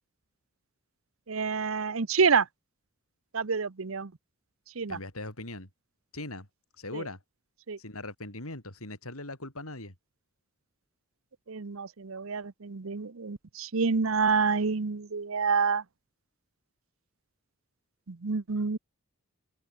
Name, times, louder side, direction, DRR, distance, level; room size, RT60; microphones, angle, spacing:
voice 1, 1.3-2.5 3.3-4.1 4.8-5.0 6.9-7.0 7.7-7.8 11.5-15.8 18.1-18.8, right 5 dB, 75° right, 0.8 m, -28 dB
voice 2, 4.9-5.7 6.1-6.5 6.8-7.2 7.8-9.9, left 2 dB, 90° left, 7.6 m, -40 dB
open air
head